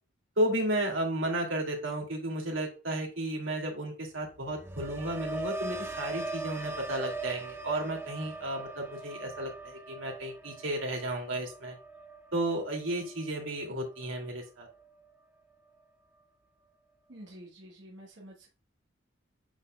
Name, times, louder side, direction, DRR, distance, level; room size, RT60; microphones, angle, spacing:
voice 1, 0.4-11.7 12.3-14.7, right 1 dB, 80° right, 1 dB, 2.7 m, -33 dB
sound 1, 4.2-14.3 14.7-15.1, right 2 dB, 10° right, 0.5 m, -41 dB
voice 2, 17.1-18.5, right 1 dB, 60° right, -3 dB, 1.4 m, -49 dB
9.3 x 4.4 x 2.3 m, 0.34 s
head